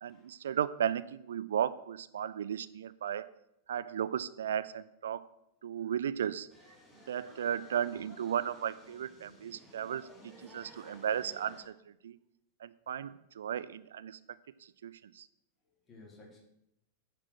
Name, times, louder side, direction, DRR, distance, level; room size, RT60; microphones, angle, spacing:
voice 1, 0.0-3.3 3.7-5.3 5.6-6.5 7.1-11.7 12.0-12.1 12.6-14.2 14.8-15.3, right 9 dB, 65° right, 15 dB, 0.4 m, -35 dB
sound 1, 6.5-11.6, left 1 dB, 5° left, 4.6 m, -56 dB
voice 2, 15.7-16.4, left 2 dB, 25° left, -1 dB, 3.4 m, -56 dB
9.3 x 4.8 x 7.3 m, 0.80 s
figure-of-eight pair, 90°, 0 cm